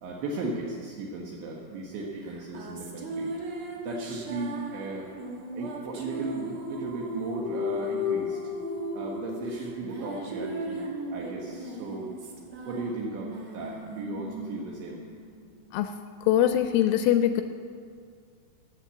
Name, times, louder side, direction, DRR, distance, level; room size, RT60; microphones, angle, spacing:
voice 1, 0.0-3.3 3.8-5.1 5.5-8.4 8.9-12.1 12.7-15.0, right 3 dB, 70° right, -2 dB, 3.2 m, -36 dB
sound 1, 2.2-15.9, left 1 dB, 90° right, 1.5 m, -36 dB
voice 2, 16.2-17.4, left 11 dB, 85° left, 8 dB, 2.9 m, -22 dB
16.0 x 9.2 x 6.9 m, 2.2 s
omnidirectional pair, 5.9 m